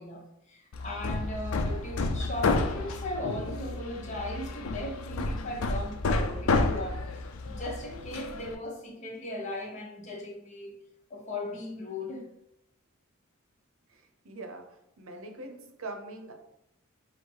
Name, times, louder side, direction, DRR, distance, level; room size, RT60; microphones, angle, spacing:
voice 1, 0.0-10.7 11.1-12.3, left 1 dB, 35° left, 0.8 m, -38 dB
Hammer, 0.7-8.6, left 3 dB, 80° left, 0.4 m, -30 dB
voice 2, 14.2-14.6 15.0-16.3, right 2 dB, 75° right, 0.7 m, -41 dB
4.7 x 2.0 x 4.5 m
head